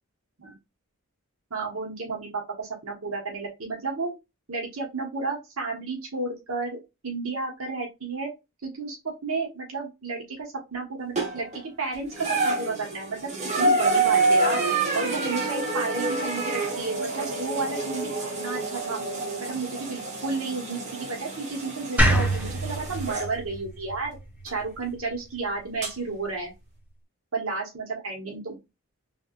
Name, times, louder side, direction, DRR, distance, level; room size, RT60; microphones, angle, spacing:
voice 1, 1.5-4.1 4.5-6.8 7.0-8.3 8.6-14.6 14.9-18.1 18.4-19.0 19.4-24.2 24.4-26.5 27.3-28.6, right 3 dB, 85° right, -1 dB, 1.4 m, -32 dB
sound 1, 11.2-11.6 12.1-23.3 24.5-24.6 25.8-25.9, right 2 dB, 35° right, 1.1 m, -27 dB
sound 2, 22.0-25.1, right 1 dB, 5° right, 0.9 m, -26 dB
3.5 x 3.2 x 2.4 m, 0.23 s
head